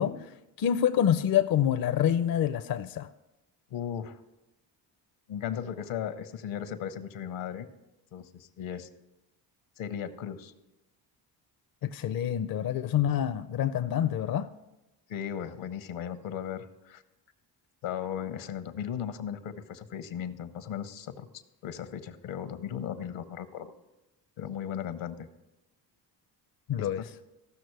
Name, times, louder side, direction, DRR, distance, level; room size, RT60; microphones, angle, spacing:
voice 1, 0.0-3.1 11.8-14.5 26.7-27.0, left 10 dB, 45° left, 10 dB, 0.6 m, -27 dB
voice 2, 3.7-4.2 5.3-7.7 8.1-8.9 9.8-10.5 15.1-17.0 17.8-21.3 21.6-23.7 24.4-25.3 26.8-27.1, left 9 dB, 70° left, 11 dB, 0.9 m, -36 dB
15.5 x 6.2 x 4.6 m, 0.97 s
supercardioid pair, 60°, 48 cm